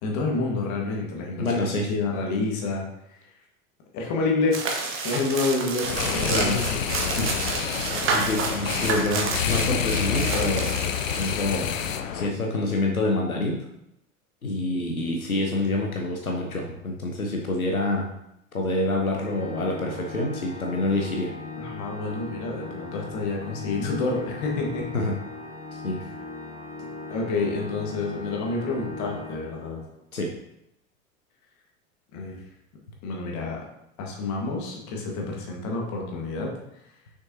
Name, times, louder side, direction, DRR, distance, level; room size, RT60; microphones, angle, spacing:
voice 1, 0.0-1.6 1.9-2.8 3.9-4.6 4.9-6.8 21.6-24.9 27.1-29.8 32.1-32.4 33.0-33.6 34.0-36.5, left 3 dB, 40° left, 0 dB, 1.7 m, -28 dB
voice 2, 1.4-1.9 6.3-6.6 7.2-7.3 8.1-10.8 11.1-11.7 12.1-13.7 14.4-18.1 18.5-21.3 24.9-25.2 25.7-26.0 30.1-30.3, left 2 dB, 85° left, 0 dB, 0.9 m, -27 dB
sound 1, 4.5-11.3, right 4 dB, 30° right, 1.2 m, -29 dB
sound 2, 5.8-12.3, left 8 dB, 70° left, 0.6 m, -28 dB
Organ, 19.2-30.0, left 3 dB, 20° left, 1.8 m, -39 dB
6.3 x 6.1 x 2.8 m, 0.80 s
figure-of-eight pair, 80°, 41 cm